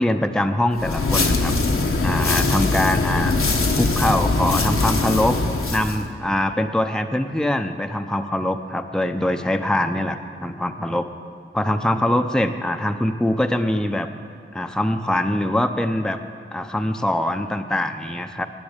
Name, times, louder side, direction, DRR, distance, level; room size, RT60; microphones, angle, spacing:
voice 1, 0.0-1.5 2.0-3.3 3.7-5.4 5.7-11.1 11.5-14.1 14.5-16.2 16.5-18.5, left 1 dB, 5° left, 7 dB, 0.6 m, -23 dB
sound 1, 0.7-6.0, left 3 dB, 80° left, 1.1 m, -21 dB
10.5 x 9.4 x 8.1 m, 2.3 s
wide cardioid pair, 65°, 21 cm